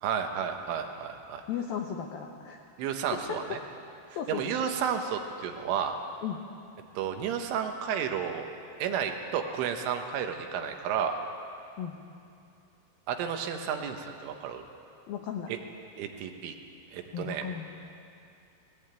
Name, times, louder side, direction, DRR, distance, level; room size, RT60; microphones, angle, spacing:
voice 1, 0.0-1.4 2.8-3.6 4.3-6.0 7.0-8.5 8.8-11.2 13.1-14.7 15.5-15.6 16.0-16.6 16.9-17.5, right 8 dB, 75° right, 5 dB, 3.6 m, -32 dB
voice 2, 1.5-2.6 3.1-3.4 4.1-4.4 6.2-6.4 11.8-12.0 15.1-15.5 17.1-17.7, left 8 dB, 90° left, 3 dB, 2.1 m, -35 dB
20.0 x 17.5 x 9.0 m, 2.5 s
omnidirectional pair, 5.9 m